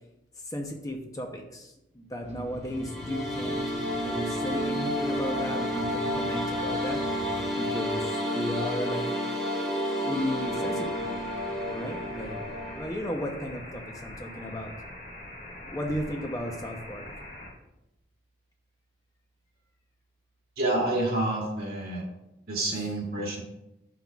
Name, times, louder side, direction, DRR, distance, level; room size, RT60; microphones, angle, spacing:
voice 1, 0.4-3.7 4.0-7.0 7.5-9.1 10.0-11.3 11.7-12.4 12.8-14.7 15.7-17.1 22.7-22.9, equal, 20° left, 2 dB, 0.6 m, -34 dB
sound 1, 2.2-7.4, right 1 dB, 35° right, 1.0 m, -45 dB
sound 2, 2.6-12.8, equal, ahead, 2.3 m, -30 dB
sound 3, 10.4-17.5, left 1 dB, 50° left, 2.0 m, -43 dB
voice 2, 20.6-22.1 22.5-23.4, right 2 dB, 50° right, -2 dB, 1.9 m, -28 dB
10.0 x 5.9 x 2.3 m, 0.91 s
head